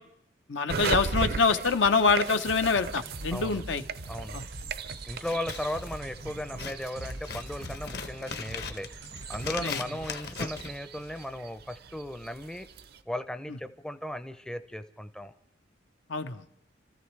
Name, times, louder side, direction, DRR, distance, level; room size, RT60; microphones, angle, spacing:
voice 1, 0.5-3.8 4.3-4.5 9.6-9.8 16.1-16.4, left 4 dB, 85° left, 8 dB, 0.8 m, -25 dB
sound 1, 0.7-13.0, right 4 dB, 55° right, 0.6 m, -38 dB
sound 2, 2.0-9.9, right 1 dB, 85° right, 1.3 m, -44 dB
voice 2, 3.3-3.6 4.1-4.4 5.1-8.9 9.3-12.7 13.1-15.3, left 1 dB, 5° left, 10 dB, 0.5 m, -36 dB
Scissors, 5.1-11.4, left 5 dB, 60° left, 1.0 m, -40 dB
29.5 x 14.0 x 3.2 m, 0.74 s
head